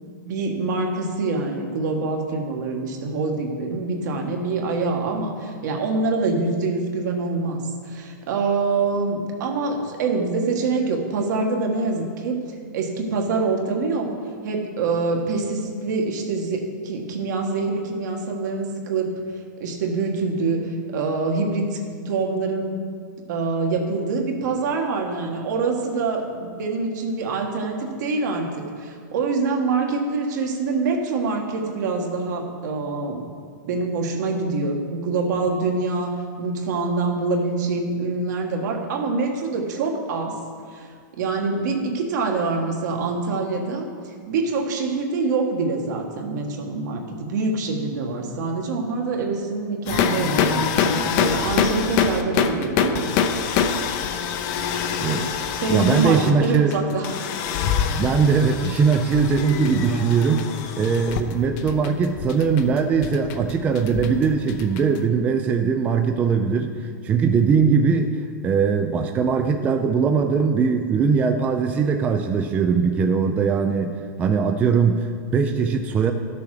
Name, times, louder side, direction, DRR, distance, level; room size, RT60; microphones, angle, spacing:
voice 1, 0.2-14.2 14.4-19.1 19.6-21.8 22.1-22.8 23.3-33.3 33.7-40.4 40.7-53.1 54.1-54.2 55.1-55.3 55.6-57.3, right 3 dB, 65° right, 2 dB, 1.6 m, -25 dB
sound 1, 49.9-65.0, left 7 dB, 35° left, 0.6 m, -25 dB
voice 2, 55.7-56.8 58.0-60.5 60.8-68.1 68.4-76.1, right 5 dB, 15° right, 5 dB, 0.3 m, -20 dB
12.0 x 6.8 x 4.9 m, 2.1 s
supercardioid pair, 160°, 10 cm